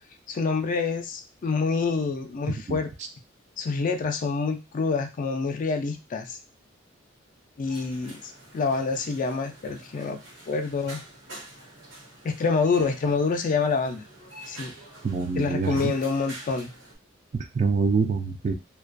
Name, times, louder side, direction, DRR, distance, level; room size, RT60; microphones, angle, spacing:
voice 1, 0.3-2.9 3.6-6.4 7.6-8.2 8.5-10.2 10.5-11.0 12.2-14.0 14.5-14.7 15.4-16.7, left 4 dB, 45° left, 6 dB, 0.3 m, -27 dB
sound 1, 7.7-17.0, right 1 dB, 75° right, 1.2 m, -46 dB
voice 2, 15.0-15.9 17.3-18.5, right 4 dB, 35° right, 7 dB, 0.3 m, -25 dB
2.3 x 2.2 x 2.5 m, 0.27 s
head